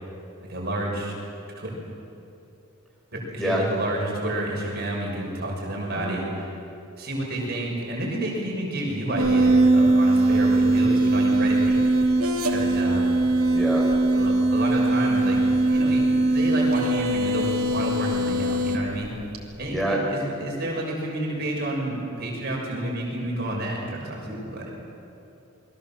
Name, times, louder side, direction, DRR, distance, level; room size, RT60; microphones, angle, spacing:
voice 1, 0.5-1.1 1.6-1.7 3.1-6.6 7.0-11.9 12.5-13.2 14.1-15.4 15.7-19.1 19.6-24.7, right 1 dB, 50° right, -2 dB, 6.7 m, -30 dB
sound 1, 9.2-19.6, right 2 dB, 90° right, 2.8 m, -21 dB
voice 2, 13.5-13.8 19.7-20.0 24.3-24.4, right 1 dB, ahead, -3 dB, 4.6 m, -26 dB
28.5 x 22.0 x 7.4 m, 2.7 s
head